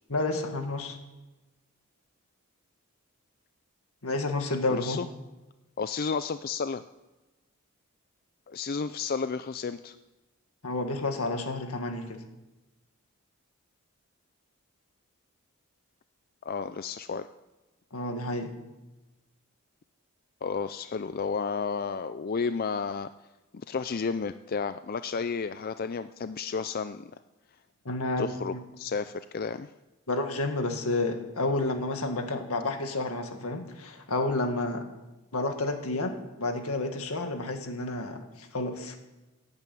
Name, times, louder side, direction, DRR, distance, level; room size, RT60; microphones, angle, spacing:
voice 1, 0.1-1.0 4.0-5.0 10.6-12.2 17.9-18.5 27.9-28.6 30.1-34.9 35.3-39.0, left 2 dB, 80° left, 5 dB, 2.0 m, -30 dB
voice 2, 4.7-5.1 5.8-6.8 8.5-10.0 16.4-17.3 20.4-23.1 23.5-27.1 28.2-29.7, left 5 dB, 40° left, 11 dB, 0.4 m, -32 dB
15.0 x 8.9 x 9.3 m, 1.1 s
head